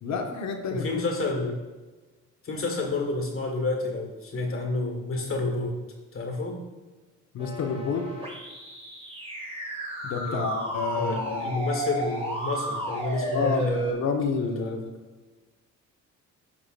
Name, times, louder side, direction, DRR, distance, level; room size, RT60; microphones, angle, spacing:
voice 1, 0.0-0.9 7.3-8.1 10.0-11.5 13.3-14.9, left 5 dB, 65° left, 4 dB, 1.1 m, -29 dB
voice 2, 0.7-1.6 2.4-5.8 6.1-6.6 10.2-10.5 11.0-13.8 14.3-14.8, left 3 dB, 45° left, 2 dB, 1.6 m, -29 dB
sound 1, 7.4-13.9, right 1 dB, 20° right, 1.7 m, -33 dB
10.0 x 4.9 x 2.5 m, 1.3 s
cardioid pair, 90°, 30 cm